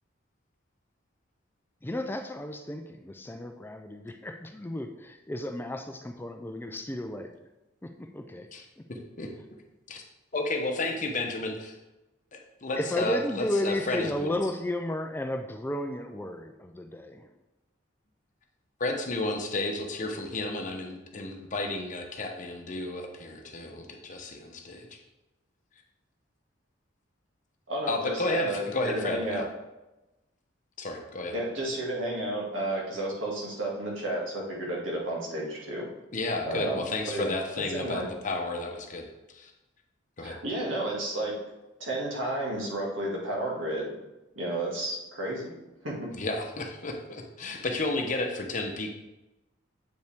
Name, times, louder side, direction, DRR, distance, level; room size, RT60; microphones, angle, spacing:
voice 1, 1.8-7.3 7.8-8.5 8.8-8.9 12.8-17.3, left 1 dB, 10° left, 5 dB, 0.3 m, -33 dB
voice 2, 8.5-9.3 9.9-10.0 10.3-11.8 12.3-14.4 18.8-25.0 27.9-29.4 30.8-31.3 36.1-39.5 40.2-40.4 46.1-48.9, left 2 dB, 40° left, 3 dB, 0.8 m, -32 dB
voice 3, 27.7-29.4 31.3-35.9 36.4-37.3 37.7-38.1 40.2-41.4 41.8-44.0 44.4-45.5 45.8-46.1, right 1 dB, 85° right, -3 dB, 2.1 m, -32 dB
7.8 x 5.3 x 3.5 m, 1.0 s
head